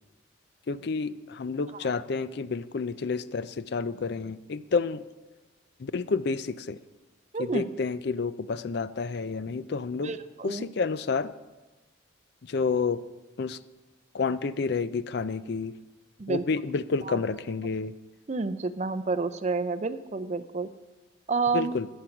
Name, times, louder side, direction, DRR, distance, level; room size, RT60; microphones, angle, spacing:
voice 1, 0.7-5.0 5.8-6.8 7.4-10.1 10.4-11.3 12.4-13.0 13.4-13.6 14.1-15.7 16.3-17.9 21.5-21.9, left 4 dB, 55° left, 15 dB, 0.4 m, -29 dB
voice 2, 7.3-7.7 10.0-10.6 16.2-16.4 17.1-17.2 18.3-20.7 21.3-21.8, right 4 dB, 35° right, 12 dB, 0.5 m, -29 dB
15.0 x 6.5 x 5.9 m, 1.2 s
head